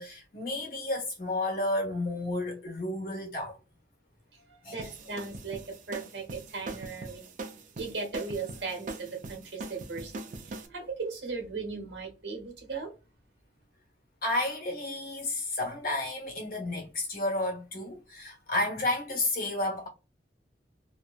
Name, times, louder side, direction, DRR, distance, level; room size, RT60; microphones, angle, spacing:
voice 1, 0.0-3.6 4.6-4.7 14.2-19.9, left 2 dB, 55° left, 1.1 m, -31 dB
voice 2, 4.3-7.3 7.8-12.9, right 4 dB, 80° right, 1.1 m, -38 dB
sound 1, 4.8-10.7, right 3 dB, 45° right, 0.4 m, -41 dB
2.8 x 2.2 x 2.3 m
head